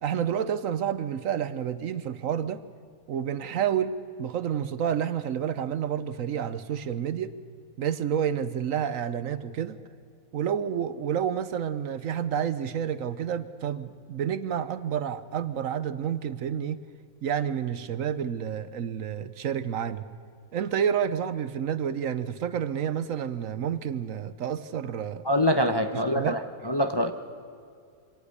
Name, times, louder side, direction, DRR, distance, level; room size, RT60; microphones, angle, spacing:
voice 1, 0.0-2.6 3.1-7.3 7.8-9.8 10.3-16.8 17.2-20.1 20.5-25.2 26.1-26.4, right 8 dB, 70° right, 14 dB, 1.2 m, -29 dB
voice 2, 25.2-26.4 26.6-27.1, equal, 20° left, 6 dB, 0.8 m, -24 dB
25.5 x 18.0 x 6.7 m, 2.4 s
omnidirectional pair, 1.5 m